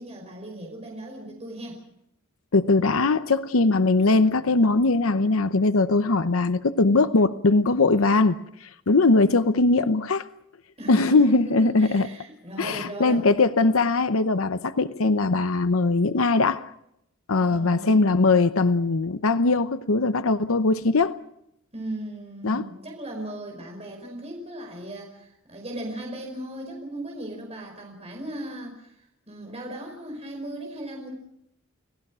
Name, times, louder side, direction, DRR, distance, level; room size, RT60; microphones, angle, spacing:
voice 1, 0.0-1.8 10.8-13.3 17.4-18.1 21.7-31.1, right 1 dB, 30° right, 5.1 m, -37 dB
voice 2, 2.5-10.3 10.9-12.1 12.6-16.7 17.3-21.2 22.4-22.7, left 3 dB, 80° left, 0.8 m, -21 dB
30.0 x 19.0 x 6.3 m
head